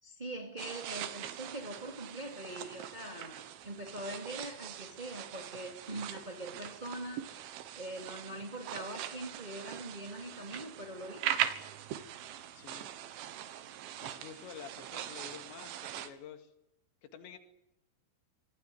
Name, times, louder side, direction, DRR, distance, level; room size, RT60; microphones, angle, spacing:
voice 1, 0.0-7.3 7.7-11.3, right 1 dB, 15° right, 3 dB, 1.5 m, -43 dB
sound 1, 0.6-16.1, right 11 dB, 80° right, 4.0 m, -41 dB
voice 2, 12.6-12.9 13.3-13.4 14.0-16.5 17.0-17.4, left 8 dB, 70° left, 8 dB, 4.6 m, -49 dB
25.5 x 19.0 x 9.4 m, 0.87 s
omnidirectional pair, 5.5 m